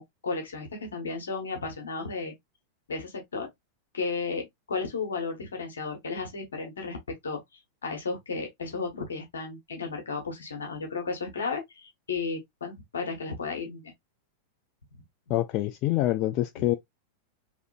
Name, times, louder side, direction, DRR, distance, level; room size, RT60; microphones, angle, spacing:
voice 1, 0.0-2.3 2.9-3.5 3.9-7.4 7.8-13.9 16.6-16.7, left 4 dB, 70° left, 1.5 m, -34 dB
voice 2, 15.3-16.7, left 15 dB, 40° left, 0.4 m, -26 dB
3.5 x 3.3 x 2.4 m
figure-of-eight pair, 90°, 0 cm